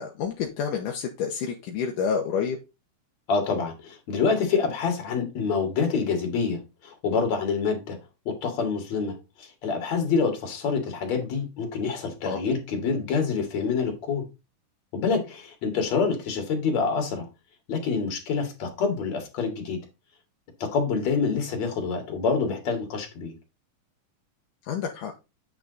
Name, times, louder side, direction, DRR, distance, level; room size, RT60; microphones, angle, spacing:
voice 1, 0.0-2.6 12.2-12.4 24.7-25.1, left 6 dB, 80° left, 2.5 m, -29 dB
voice 2, 3.3-8.0 8.3-14.2 14.9-17.3 17.7-19.8 20.6-23.3, left 5 dB, 60° left, 3.3 m, -27 dB
9.2 x 6.0 x 4.0 m
omnidirectional pair, 3.7 m